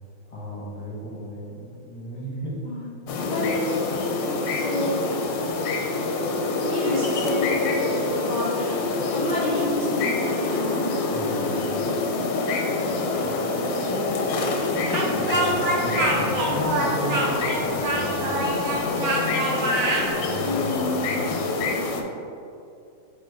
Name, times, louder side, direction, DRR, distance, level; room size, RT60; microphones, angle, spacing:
voice 1, 0.3-2.6 3.1-3.2 11.1-11.8 13.5-14.1 14.6-18.4 18.7-19.0 20.1-21.2, equal, 20° left, -5 dB, 1.3 m, -35 dB
voice 2, 2.6-3.9 4.2-5.2 6.6-11.0 20.4-21.3, left 1 dB, 40° left, -9 dB, 1.2 m, -30 dB
sound 1, 3.1-22.0, left 3 dB, 75° left, 1.3 m, -26 dB
Speech, 14.9-20.1, right 2 dB, 65° right, 1.4 m, -25 dB
6.5 x 4.0 x 3.7 m, 2.6 s
omnidirectional pair, 2.2 m